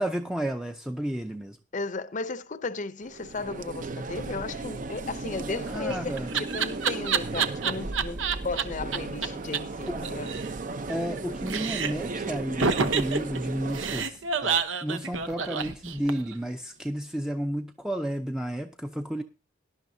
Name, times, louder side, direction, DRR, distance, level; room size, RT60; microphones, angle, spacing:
voice 1, 0.0-1.6 5.7-6.3 9.9-10.1 10.9-19.2, right 1 dB, 5° right, 0.5 m, -32 dB
voice 2, 1.7-10.4, left 3 dB, 40° left, 0.6 m, -35 dB
sound 1, 3.0-14.0, right 3 dB, 45° right, 0.6 m, -35 dB
Laughter, 5.5-8.6 8.9-9.0 9.2-9.3 9.5-9.6 9.9-11.2 11.5-12.1 12.6-16.3, right 6 dB, 85° right, 1.0 m, -28 dB
18.0 x 11.0 x 2.7 m
head